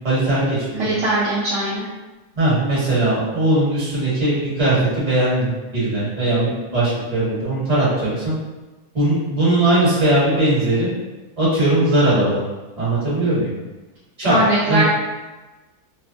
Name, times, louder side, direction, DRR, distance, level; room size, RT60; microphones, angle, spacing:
voice 1, 0.0-0.9 2.3-8.3 8.9-10.9 11.4-12.4 12.8-13.5 14.2-14.4 14.7-14.8, right 1 dB, 25° right, -9 dB, 1.1 m, -19 dB
voice 2, 0.8-1.8 14.3-14.8, right 1 dB, 65° right, -7 dB, 0.7 m, -20 dB
2.8 x 2.1 x 2.6 m, 1.2 s
omnidirectional pair, 1.7 m